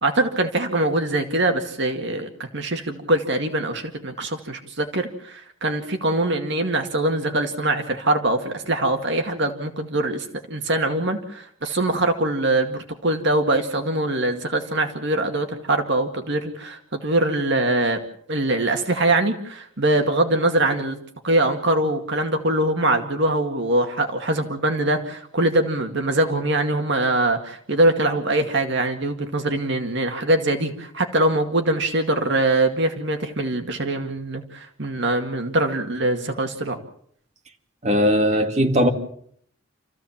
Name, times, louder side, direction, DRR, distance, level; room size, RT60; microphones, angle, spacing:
voice 1, 0.0-18.0 18.3-21.0 21.2-36.8, right 1 dB, 60° right, 2.1 m, -23 dB
voice 2, 37.8-38.9, equal, 35° right, 2.5 m, -18 dB
28.5 x 15.5 x 7.3 m
head